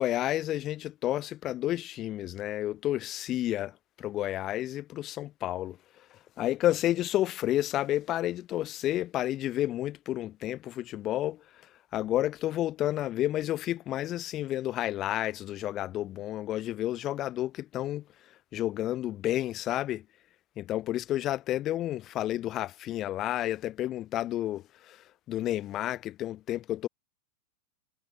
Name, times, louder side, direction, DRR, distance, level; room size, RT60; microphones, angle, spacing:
voice 1, 0.0-5.8 6.4-11.4 11.9-18.0 18.5-20.0 20.6-26.9, left 13 dB, 35° left, 3.7 m, -31 dB
figure-of-eight pair, 90°, 0 cm